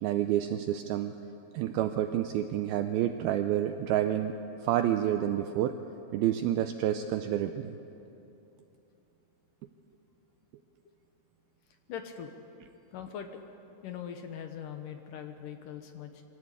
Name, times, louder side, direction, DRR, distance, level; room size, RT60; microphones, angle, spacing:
voice 1, 0.0-1.1 1.5-4.3 4.6-5.8 6.1-7.7, right 11 dB, 85° right, 8 dB, 2.2 m, -29 dB
voice 2, 11.9-12.3 12.9-13.4 13.8-16.2, left 8 dB, 70° left, 6 dB, 2.1 m, -41 dB
24.0 x 17.5 x 8.4 m, 2.9 s
omnidirectional pair, 5.0 m